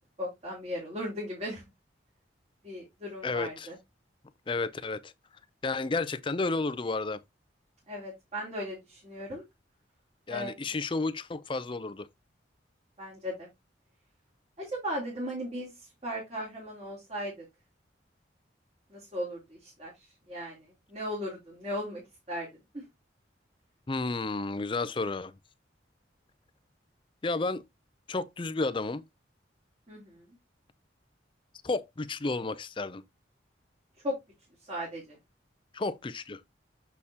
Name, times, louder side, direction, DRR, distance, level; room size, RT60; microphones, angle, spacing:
voice 1, 0.2-1.6 2.6-3.8 7.9-9.4 10.3-10.5 13.0-13.5 14.6-17.4 18.9-22.0 22.3-22.5 22.7-22.8 29.9-30.3 34.0-34.2 34.7-35.2, equal, 35° right, 3.2 m, -37 dB
voice 2, 3.2-3.7 4.5-5.1 5.6-7.2 10.3-12.1 23.9-25.3 27.2-27.6 28.1-29.0 31.6-33.0 35.7-36.4, left 3 dB, 25° left, 0.4 m, -31 dB
7.0 x 6.5 x 2.8 m
head